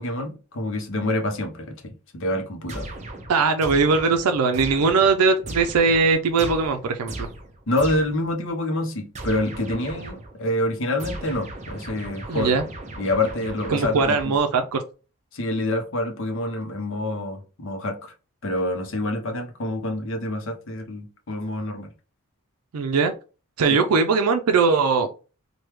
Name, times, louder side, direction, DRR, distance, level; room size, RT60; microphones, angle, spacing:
voice 1, 0.0-2.9 7.7-12.6 13.0-14.3 15.3-18.1 18.4-21.9, left 1 dB, 60° left, 0.7 m, -27 dB
sound 1, 2.7-8.3 9.1-10.4 11.0-14.7, right 1 dB, 30° right, 0.6 m, -37 dB
voice 2, 3.3-7.3 12.3-12.6 13.7-14.8 22.7-23.1 23.6-25.1, right 4 dB, 85° right, 0.4 m, -20 dB
3.3 x 2.2 x 3.1 m
head